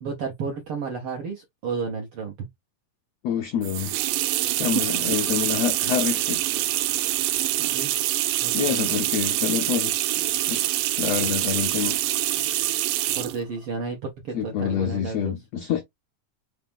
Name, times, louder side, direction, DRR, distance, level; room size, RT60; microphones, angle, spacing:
voice 1, 0.0-2.5 7.6-8.0 8.4-8.9 13.2-15.3, right 4 dB, 70° right, 1.3 m, -32 dB
voice 2, 3.2-3.9 4.6-6.4 8.5-9.9 10.5-10.6 11.0-12.0 14.3-15.8, left 9 dB, 80° left, 1.5 m, -27 dB
sound 1, 3.6-13.4, right 15 dB, 85° right, 2.2 m, -25 dB
5.7 x 2.5 x 3.5 m
omnidirectional pair, 3.8 m